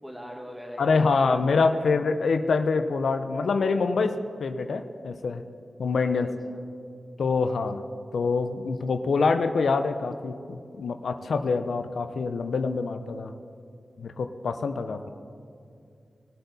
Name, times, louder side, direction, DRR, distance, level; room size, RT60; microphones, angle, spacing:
voice 1, 0.0-1.7 6.1-6.2 6.4-6.6 14.9-15.1, equal, 10° right, 2 dB, 1.8 m, -42 dB
voice 2, 0.8-5.4 5.8-6.3 7.2-7.8 8.1-13.3 14.0-15.0, left 4 dB, 85° left, 8 dB, 0.5 m, -25 dB
19.5 x 7.9 x 4.1 m, 2.4 s
cardioid pair, 65°, 0 cm